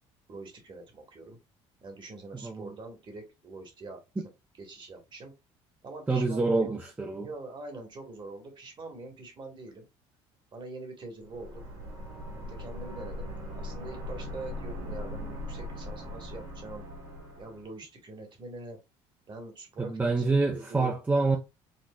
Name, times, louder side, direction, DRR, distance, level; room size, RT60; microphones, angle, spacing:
voice 1, 0.3-1.4 1.8-4.0 4.6-5.3 5.8-6.8 7.2-9.9 10.5-11.6 12.4-16.8 17.4-18.8 19.3-20.3 20.5-21.0, right 2 dB, 40° right, 1.4 m, -44 dB
voice 2, 2.4-2.7 4.2-4.3 6.1-7.3 19.8-21.4, right 3 dB, 15° right, 0.5 m, -27 dB
sound 1, 11.2-17.7, left 1 dB, 85° right, 1.5 m, -40 dB
4.3 x 2.3 x 2.3 m
supercardioid pair, 90°, 12 cm